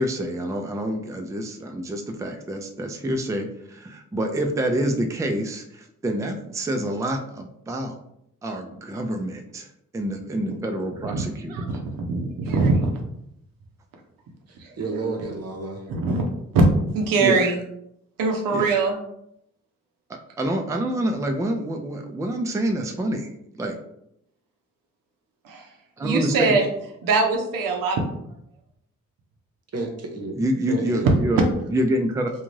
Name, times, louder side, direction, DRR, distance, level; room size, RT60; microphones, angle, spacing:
voice 1, 0.0-7.9 8.4-9.7 9.9-11.5 17.2-17.4 18.5-18.7 20.4-23.8 26.0-26.6 30.3-31.4 31.7-32.3, right 1 dB, 10° right, 4 dB, 0.4 m, -27 dB
voice 2, 11.5-12.9 14.6-15.1 15.9-16.3 16.5-16.6 16.9-17.6 18.2-19.0 25.4-25.7 26.0-26.7 27.0-28.0, right 3 dB, 85° right, 1 dB, 0.6 m, -22 dB
voice 3, 14.5-15.9 29.7-30.3 30.7-31.5, right 3 dB, 50° right, 3 dB, 0.8 m, -31 dB
2.5 x 2.3 x 3.1 m, 0.75 s
supercardioid pair, 60°, 33 cm